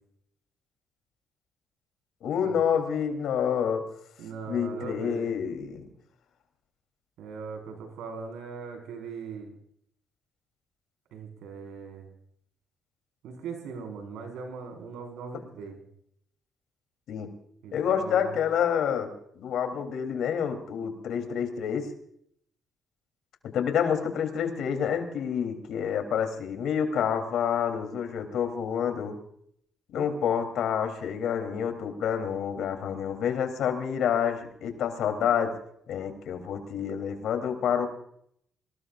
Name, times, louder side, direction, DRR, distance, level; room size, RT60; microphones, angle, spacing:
voice 1, 2.2-3.9 4.5-5.9 17.1-17.3 17.7-19.1 19.3-21.9 23.4-29.2 29.9-35.6 35.9-37.9, left 8 dB, 75° left, 6 dB, 3.4 m, -28 dB
voice 2, 4.2-5.3 7.2-9.5 11.1-12.1 13.2-15.8 17.6-18.3, right 5 dB, 90° right, 4 dB, 5.0 m, -39 dB
24.0 x 20.0 x 2.6 m, 0.68 s
cardioid pair, 90°, 0 cm